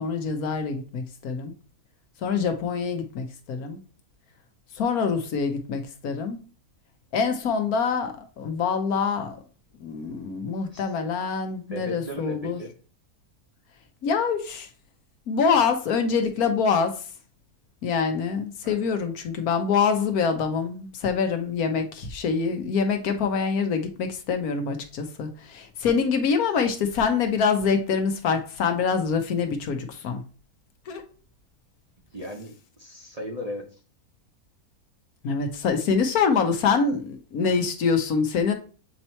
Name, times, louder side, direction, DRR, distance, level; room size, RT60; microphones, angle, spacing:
voice 1, 0.0-1.5 2.2-3.8 4.7-6.4 7.1-9.4 9.8-12.6 14.0-14.7 15.3-17.0 17.8-30.2 30.9-31.0 35.2-38.5, left 5 dB, 70° left, 6 dB, 1.3 m, -25 dB
voice 2, 11.7-12.7 18.6-18.8 32.1-33.8, left 1 dB, 30° right, 0 dB, 0.8 m, -37 dB
8.0 x 2.9 x 4.3 m, 0.38 s
omnidirectional pair, 1.6 m